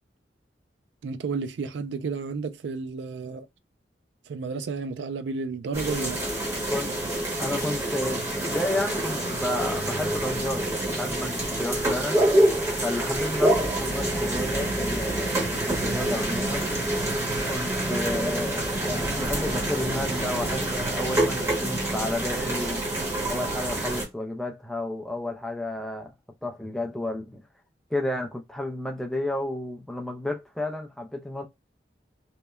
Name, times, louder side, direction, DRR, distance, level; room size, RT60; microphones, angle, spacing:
voice 1, 1.0-3.5 4.3-6.2, right 4 dB, 85° right, 0.3 m, -32 dB
sound 1, 5.7-24.1, right 1 dB, 15° right, 0.9 m, -27 dB
voice 2, 6.4-6.9 7.4-12.2 12.8-16.6 17.5-22.8 23.3-26.1 26.4-27.4 27.9-31.5, left 1 dB, 5° left, 0.3 m, -32 dB
2.9 x 2.1 x 2.2 m
head